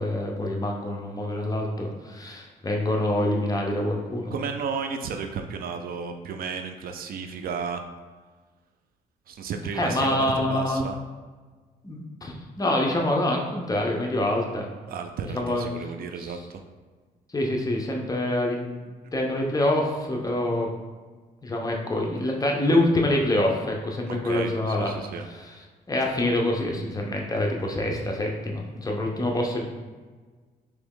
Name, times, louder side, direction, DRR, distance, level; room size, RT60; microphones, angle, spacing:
voice 1, 0.0-4.3 9.7-10.8 11.8-14.7 15.3-15.7 16.3-16.4 17.3-18.7 19.1-20.7 21.4-24.9 25.3-25.6 25.9-29.6, left 1 dB, 25° left, 0 dB, 0.7 m, -26 dB
voice 2, 4.3-7.8 9.3-10.9 14.9-16.6 24.1-25.3, right 5 dB, 70° right, 6 dB, 0.4 m, -33 dB
3.3 x 3.0 x 3.6 m, 1.4 s
cardioid pair, 85°, 16 cm